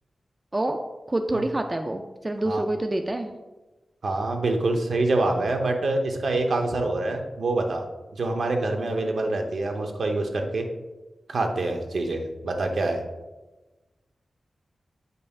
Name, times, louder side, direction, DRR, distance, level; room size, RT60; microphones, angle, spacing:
voice 1, 0.5-3.3, right 1 dB, 20° right, 5 dB, 0.3 m, -27 dB
voice 2, 4.0-7.8 8.2-10.7 11.3-13.0, right 2 dB, 70° right, 3 dB, 0.8 m, -26 dB
8.0 x 5.4 x 2.3 m, 1.1 s
wide cardioid pair, 145°, 0 cm